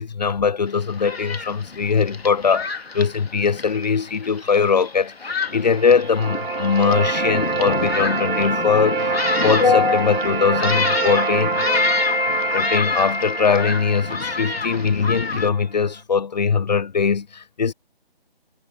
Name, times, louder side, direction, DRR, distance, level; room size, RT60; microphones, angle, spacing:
voice 1, 0.0-9.1 9.4-17.7, left 5 dB, 45° left, 0.4 m, -21 dB
Thunderstorm, 0.7-15.5, left 4 dB, 80° left, 2.2 m, -29 dB
sound 1, 5.6-15.6, right 4 dB, 55° right, 3.4 m, -26 dB
figure-of-eight pair, 155°, 31 cm